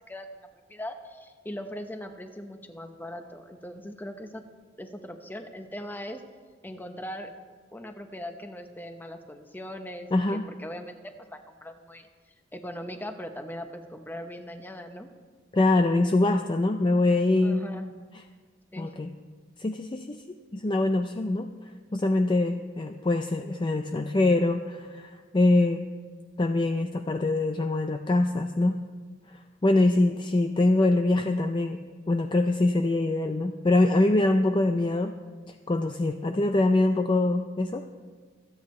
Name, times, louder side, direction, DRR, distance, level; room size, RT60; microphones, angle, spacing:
voice 1, 0.1-4.4 4.8-6.2 6.6-7.3 7.7-10.9 11.3-12.1 12.5-15.1 17.4-17.9 18.7-18.9, equal, 10° left, 6 dB, 0.9 m, -40 dB
voice 2, 10.1-10.5 15.5-17.6 18.8-19.1 19.6-20.2 20.5-21.5 21.9-25.9 26.4-28.8 29.3-31.8 32.1-35.1 35.7-37.8, left 2 dB, 25° left, 6 dB, 0.4 m, -24 dB
26.5 x 8.8 x 3.2 m, 1.5 s
head